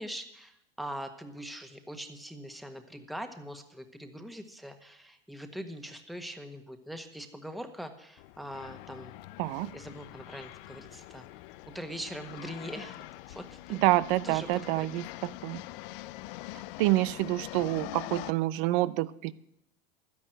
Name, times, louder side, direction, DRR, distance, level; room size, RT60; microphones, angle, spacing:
voice 1, 0.0-9.2 9.6-11.2 11.7-13.8 14.2-14.9, equal, ahead, 6 dB, 1.4 m, -42 dB
sound 1, 8.2-18.3, left 17 dB, 65° left, 0.7 m, -44 dB
voice 2, 9.4-9.7 13.7-15.6 16.8-19.3, right 18 dB, 60° right, 17 dB, 0.8 m, -27 dB
12.5 x 10.5 x 7.8 m, 0.78 s
hypercardioid pair, 100°, 30 cm